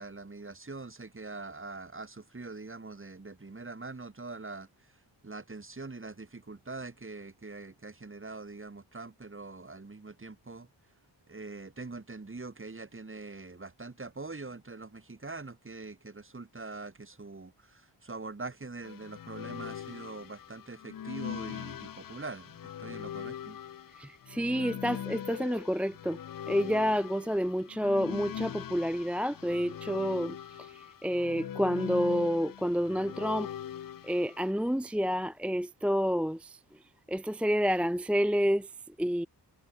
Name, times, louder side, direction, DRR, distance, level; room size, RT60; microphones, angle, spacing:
voice 1, 0.0-4.9 5.2-10.7 11.3-23.6, right 3 dB, 30° right, 4.0 m, -43 dB
sound 1, 18.8-34.5, left 10 dB, 50° left, 0.6 m, -41 dB
voice 2, 24.0-26.2 26.5-33.5 34.0-36.6 37.1-39.3, equal, 5° right, 0.4 m, -29 dB
wide cardioid pair, 90°, 43 cm